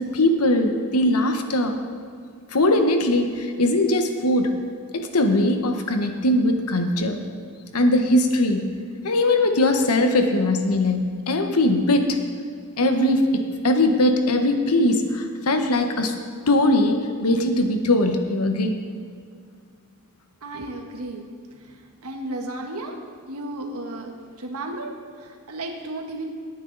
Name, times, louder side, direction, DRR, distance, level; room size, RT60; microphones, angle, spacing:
voice 1, 0.0-1.8 2.5-4.6 4.9-7.2 7.7-8.7 9.0-12.2 12.8-16.1 16.5-18.8, left 1 dB, 85° left, 6 dB, 1.2 m, -20 dB
voice 2, 20.4-21.3 21.6-23.0 23.3-26.3, right 2 dB, 80° right, 3 dB, 1.5 m, -34 dB
18.0 x 9.3 x 4.0 m, 2.2 s
head